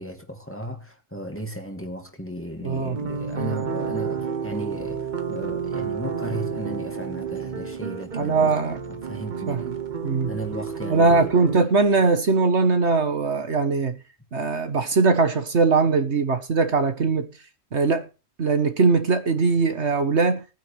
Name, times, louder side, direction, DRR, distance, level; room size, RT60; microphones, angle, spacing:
voice 1, 0.0-8.6 8.9-9.8 10.3-11.3, right 1 dB, 10° left, 2.3 m, -35 dB
voice 2, 2.6-3.0 8.1-8.8 9.5-9.6 10.0-10.3 10.9-14.0 14.3-17.3 17.7-18.0 18.4-20.4, right 4 dB, 60° right, 1.6 m, -21 dB
sound 1, 2.9-11.6, right 6 dB, 40° right, 1.1 m, -30 dB
19.5 x 9.4 x 3.4 m
omnidirectional pair, 1.3 m